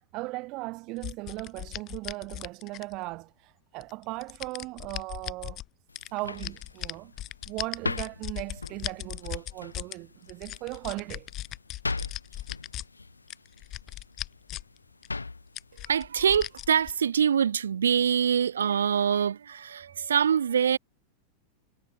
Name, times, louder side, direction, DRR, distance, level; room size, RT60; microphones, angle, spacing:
voice 1, 0.0-5.6 6.1-7.1 7.5-11.3, right 23 dB, 40° right, 2.1 m, -37 dB
sound 1, 1.0-3.1 3.8-5.7 6.0-10.0 10.3-12.8 13.3-14.8 15.0-15.1 15.6-16.9, left 14 dB, 35° left, 1.7 m, -38 dB
sound 2, 5.9-17.1, left 3 dB, 80° left, 1.1 m, -41 dB
voice 2, 15.9-20.8, right 8 dB, 70° right, 1.7 m, -24 dB
figure-of-eight pair, 90°, 0 cm